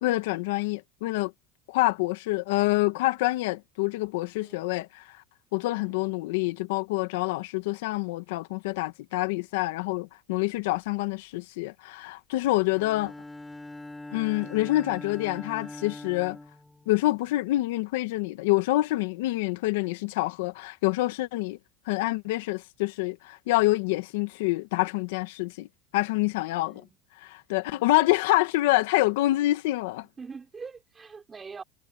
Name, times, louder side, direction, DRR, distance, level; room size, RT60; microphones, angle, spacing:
voice 1, 0.0-1.3 1.7-5.2 5.5-13.1 14.1-16.4 16.9-21.6 21.9-25.7 25.9-26.8 27.2-30.1, left 18 dB, 80° left, 1.8 m, -26 dB
voice 2, 5.7-6.0 12.6-12.9 26.6-27.0 27.7-27.9 30.2-31.6, right 5 dB, 20° right, 5.3 m, -44 dB
Bowed string instrument, 12.7-17.3, left 2 dB, 10° left, 3.3 m, -42 dB
supercardioid pair, 120°, 0 cm